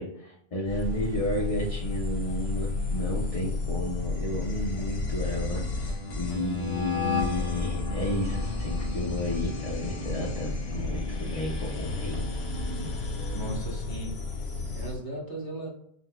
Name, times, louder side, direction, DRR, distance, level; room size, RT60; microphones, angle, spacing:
voice 1, 0.0-12.2 12.5-12.6, left 1 dB, 40° left, -3 dB, 0.8 m, -32 dB
sound 1, 0.6-15.0, left 3 dB, 85° left, 1.0 m, -32 dB
sound 2, 7.9-13.5, right 2 dB, 75° right, 0.9 m, -39 dB
voice 2, 13.3-14.2 14.7-15.7, right 1 dB, 20° left, -3 dB, 1.1 m, -37 dB
5.5 x 2.2 x 2.2 m, 0.70 s
omnidirectional pair, 1.0 m